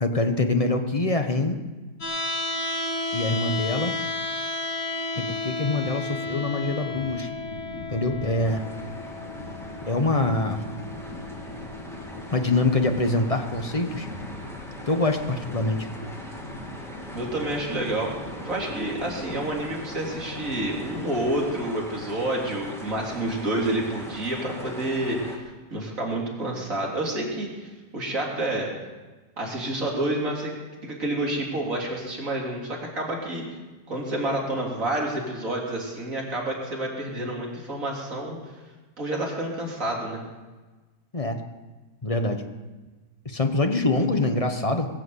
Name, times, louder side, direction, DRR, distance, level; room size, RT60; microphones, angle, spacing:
voice 1, 0.0-1.6 3.1-4.0 5.2-7.3 7.9-8.6 9.9-10.6 12.3-14.1 14.9-15.9 41.1-41.4 42.0-42.4 43.2-44.9, left 2 dB, 25° left, 6 dB, 1.0 m, -24 dB
sound 1, 2.0-14.0, left 2 dB, 80° left, 3.7 m, -33 dB
sound 2, 6.9-21.6, left 1 dB, 50° left, 2.5 m, -40 dB
sound 3, 8.4-25.4, equal, ahead, 2.4 m, -42 dB
voice 2, 17.1-18.1 18.4-25.4 25.7-28.7 29.4-30.5 30.8-33.5 33.9-38.4 39.0-40.2, right 1 dB, 50° right, -2 dB, 3.7 m, -29 dB
21.0 x 7.9 x 8.1 m, 1.2 s
omnidirectional pair, 1.8 m